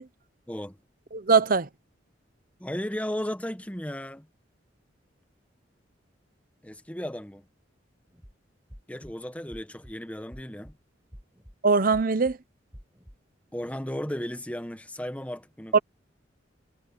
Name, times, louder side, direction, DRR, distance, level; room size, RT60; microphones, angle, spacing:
voice 1, 0.5-0.8 2.6-4.3 6.6-7.5 8.9-10.8 13.5-15.7, equal, 10° left, 1.1 m, -35 dB
voice 2, 1.1-1.7 11.6-12.4 15.7-15.8, right 4 dB, 50° right, 0.9 m, -21 dB
sound 1, 8.1-8.3 8.7-9.1 9.5-9.9 10.3-10.7 11.1-11.5 11.9-12.3 12.7-13.2, equal, 10° right, 5.7 m, -48 dB
head